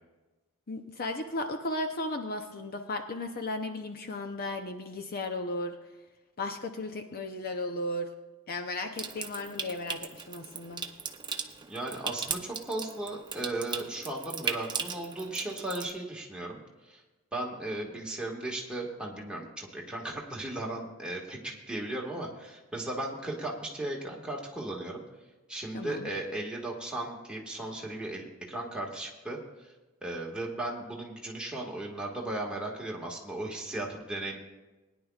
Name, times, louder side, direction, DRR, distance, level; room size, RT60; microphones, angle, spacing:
voice 1, 0.7-5.8 6.4-8.1 8.5-10.8 25.7-26.1, left 2 dB, 45° left, 6 dB, 0.7 m, -35 dB
Water tap faucet / Sink (filling or washing) / Trickle dribble, 9.0-15.9, right 6 dB, 20° right, 0.7 m, -38 dB
voice 2, 11.7-17.0 17.3-25.0 25.5-29.4 30.0-34.4, right 2 dB, 5° right, -2 dB, 1.7 m, -36 dB
20.5 x 10.5 x 2.4 m, 1.1 s
head